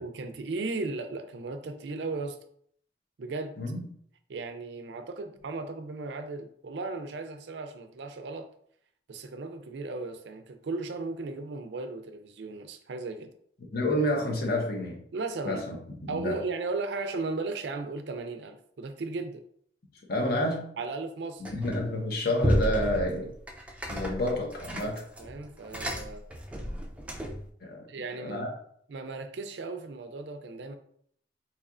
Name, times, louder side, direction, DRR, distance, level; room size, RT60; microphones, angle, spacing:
voice 1, 0.0-2.4 3.2-3.5 4.3-8.5 9.1-13.3 15.1-15.6 16.1-19.4 20.8-21.4 25.2-26.2 27.9-28.5 28.9-30.8, right 3 dB, 75° right, 7 dB, 0.4 m, -36 dB
voice 2, 13.7-15.0 15.4-16.4 20.1-20.6 21.5-23.3 23.9-25.0 27.6-27.9 28.2-28.5, left 1 dB, 60° left, 0 dB, 0.9 m, -29 dB
sound 1, 21.4-22.0 22.4-27.5, equal, 10° right, 0.4 m, -32 dB
4.1 x 2.9 x 2.4 m, 0.64 s
head